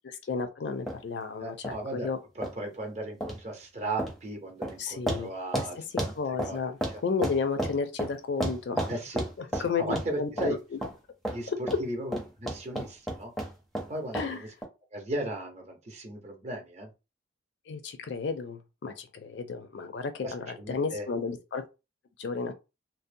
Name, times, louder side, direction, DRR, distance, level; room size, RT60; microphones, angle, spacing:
voice 1, 0.0-2.2 4.8-5.8 6.2-8.9 9.6-10.8 14.1-14.4 17.7-21.6 22.2-22.5, left 5 dB, 65° left, 0.4 m, -33 dB
sound 1, 0.9-1.0 1.6-1.7 2.4-2.5 3.2-3.4 4.0-4.2 4.6-4.8 5.1-5.2 5.5-5.7 6.0-7.0 7.2-8.1 8.4-9.7 9.9-10.1 10.4-10.5 10.8-10.9 11.2-11.4 11.7-11.8 12.1-13.9 14.1-14.3 14.6-14.7, right 1 dB, ahead, 0.5 m, -31 dB
voice 2, 1.4-2.1 2.4-5.8 6.0-6.1 6.4-6.6 6.9-7.0 8.9-9.2 9.5-10.6 11.3-13.3 13.9-14.5 14.9-16.9 20.2-21.1, right 1 dB, 35° right, 0.7 m, -36 dB
2.6 x 2.0 x 2.5 m
head